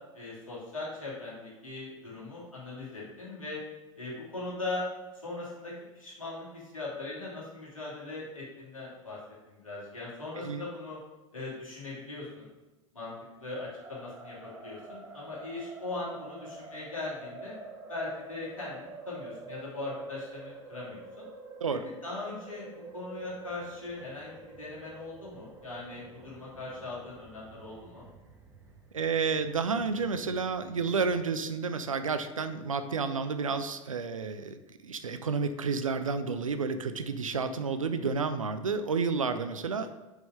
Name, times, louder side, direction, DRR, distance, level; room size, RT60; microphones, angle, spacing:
voice 1, 0.1-3.6 4.0-4.9 5.2-9.2 9.5-11.0 11.3-12.5 12.9-17.5 17.9-21.2 22.0-28.0, left 2 dB, 90° left, -6 dB, 2.7 m, -40 dB
sound 1, 13.8-31.2, right 3 dB, 15° right, 1.6 m, -48 dB
voice 2, 28.9-40.0, right 5 dB, 85° right, 10 dB, 0.6 m, -31 dB
6.0 x 5.6 x 4.9 m, 1.1 s
figure-of-eight pair, 80°, 17 cm